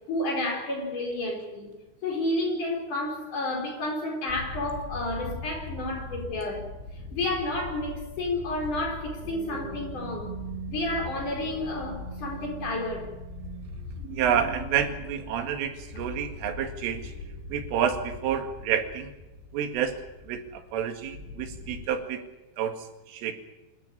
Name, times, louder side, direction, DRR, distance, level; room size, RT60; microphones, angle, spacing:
voice 1, 0.1-1.7 2.0-6.7 7.1-10.4 10.7-13.1, left 1 dB, 40° left, 6.0 m, -31 dB
sound 1, 4.3-21.8, left 3 dB, 80° left, 5.9 m, -41 dB
sound 2, 9.1-19.3 19.9-20.2, right 8 dB, 60° right, 3.5 m, -45 dB
voice 2, 14.1-17.1 17.5-19.1 19.5-20.0 20.2-22.3 22.6-23.3, right 8 dB, 85° right, 4.6 m, -29 dB
26.5 x 13.0 x 10.0 m
omnidirectional pair, 5.6 m